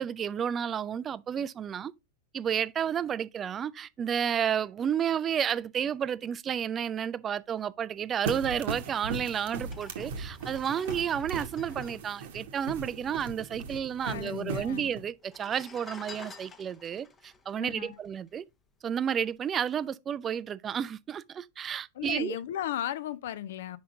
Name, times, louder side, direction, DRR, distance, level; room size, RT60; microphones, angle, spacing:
voice 1, 0.0-1.9 2.3-18.4 18.8-22.4, right 8 dB, 25° right, 0.3 m, -31 dB
sound 1, 8.2-15.0, right 4 dB, 55° right, 0.9 m, -38 dB
sound 2, 9.6-13.2 13.5-13.6 13.8-14.5 15.1-18.6 19.1-19.3, left 4 dB, 20° left, 0.7 m, -50 dB
voice 2, 14.0-14.9 17.6-18.0 21.9-23.8, left 11 dB, 55° left, 0.4 m, -35 dB
5.6 x 5.1 x 3.5 m
figure-of-eight pair, 90°, 0 cm